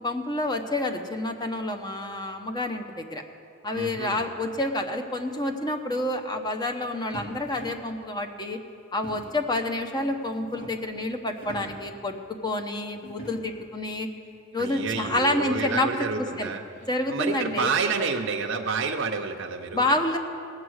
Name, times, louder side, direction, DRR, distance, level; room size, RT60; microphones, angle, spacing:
voice 1, 0.0-3.2 3.6-8.6 8.9-14.1 14.5-16.5 16.9-17.7 19.7-20.2, left 1 dB, 20° left, 4 dB, 0.8 m, -28 dB
voice 2, 3.7-4.2 14.6-16.6 17.1-20.0, right 5 dB, 65° right, 2 dB, 0.7 m, -29 dB
sound 1, 7.1-8.0 9.0-9.5 10.1-10.9 11.3-11.9 13.0-13.7 14.3-14.4 14.6-15.4 16.8-17.9, right 1 dB, 65° left, 2.0 m, -44 dB
17.5 x 8.0 x 6.4 m, 2.4 s
head